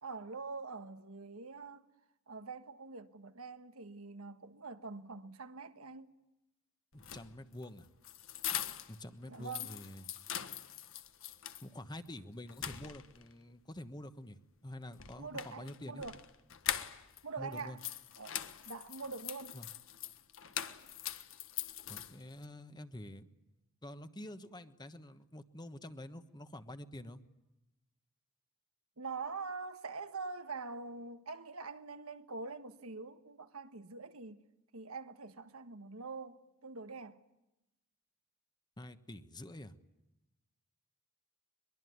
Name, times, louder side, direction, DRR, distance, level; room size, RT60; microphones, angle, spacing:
voice 1, 0.0-1.9 2.3-6.1 9.3-9.8 15.2-16.2 17.2-17.8 18.2-19.6 29.0-34.4 34.7-37.2, right 4 dB, 90° right, 1.4 m, -44 dB
sound 1, 6.9-9.0 9.3-11.7 12.1-12.2 12.5-13.3 14.9-17.2 17.5-22.4, left 10 dB, 65° left, 1.5 m, -42 dB
voice 2, 6.9-7.9 8.9-10.0 11.6-16.0 17.4-17.8 19.5-19.7 21.9-23.3 23.8-27.2 38.8-39.7, left 1 dB, 20° left, 1.2 m, -47 dB
23.0 x 22.5 x 9.5 m
head